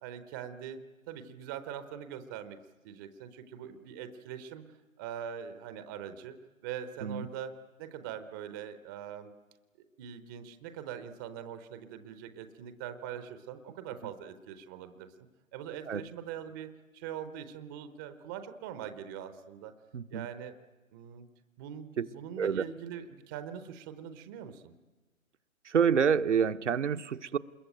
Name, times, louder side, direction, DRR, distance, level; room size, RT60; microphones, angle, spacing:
voice 1, 0.0-2.6 2.8-6.3 6.6-9.3 10.0-19.8 20.1-20.5 20.9-21.3 21.6-24.7, right 9 dB, 15° right, 11 dB, 0.8 m, -42 dB
voice 2, 19.9-20.3 22.0-22.1 22.4-22.6 25.7-27.4, right 7 dB, 60° right, 9 dB, 1.0 m, -27 dB
27.0 x 21.5 x 9.0 m, 1.2 s
figure-of-eight pair, 140°, 41 cm